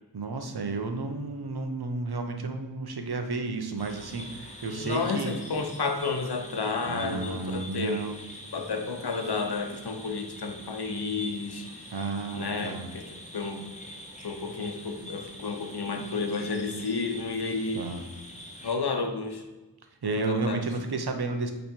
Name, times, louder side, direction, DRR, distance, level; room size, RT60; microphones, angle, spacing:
voice 1, 0.1-5.3 6.8-8.2 11.9-12.9 17.7-18.0 20.0-21.5, right 3 dB, 75° right, 5 dB, 0.9 m, -32 dB
sound 1, 3.8-18.7, equal, 20° left, 1.3 m, -45 dB
voice 2, 4.7-8.0 8.5-12.0 12.3-13.0 13.3-13.6 14.2-17.8 18.6-19.4 20.0-20.6, left 4 dB, 80° left, 5 dB, 0.9 m, -31 dB
8.4 x 3.3 x 4.4 m, 1.1 s
wide cardioid pair, 45°, 39 cm